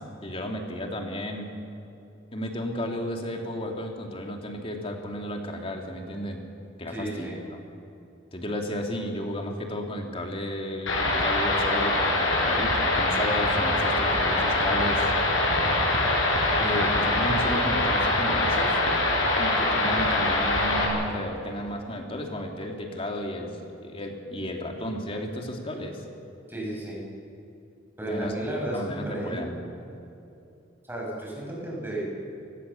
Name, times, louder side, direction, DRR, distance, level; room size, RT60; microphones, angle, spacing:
voice 1, 0.0-1.5 2.3-6.4 6.8-7.3 8.3-15.1 16.5-18.8 19.4-26.0 28.1-28.3 28.7-29.6, left 1 dB, 30° left, 2 dB, 2.7 m, -33 dB
voice 2, 6.9-7.3 26.5-27.0 28.0-29.5 30.8-32.0, right 1 dB, 10° right, -4 dB, 6.8 m, -33 dB
sound 1, 10.9-20.9, left 2 dB, 80° left, 6.1 m, -24 dB
30.0 x 18.0 x 7.0 m, 2.7 s
head